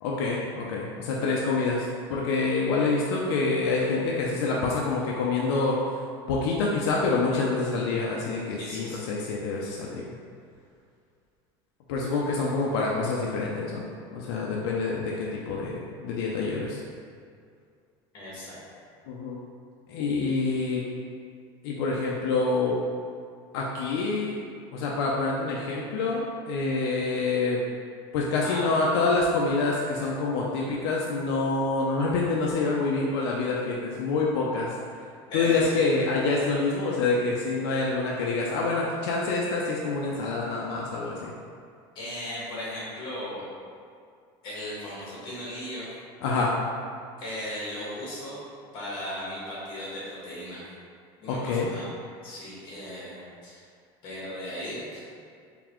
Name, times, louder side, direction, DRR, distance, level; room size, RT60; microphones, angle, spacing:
voice 1, 0.0-6.0 6.3-10.1 11.9-16.8 19.1-19.4 19.9-20.8 21.6-22.7 23.5-24.4 24.7-27.6 28.1-34.8 35.3-41.3 46.2-46.5 51.3-51.7, left 3 dB, 80° left, -3 dB, 0.5 m, -27 dB
voice 2, 8.6-9.1 18.1-18.6 28.4-28.7 35.3-35.8 41.9-43.4 44.4-45.9 47.2-48.4 48.7-50.6 51.2-51.9 52.2-53.6 54.0-55.2, left 1 dB, 35° left, -7 dB, 1.5 m, -37 dB
3.9 x 3.3 x 3.0 m, 2.3 s
cardioid pair, 180°, 13 cm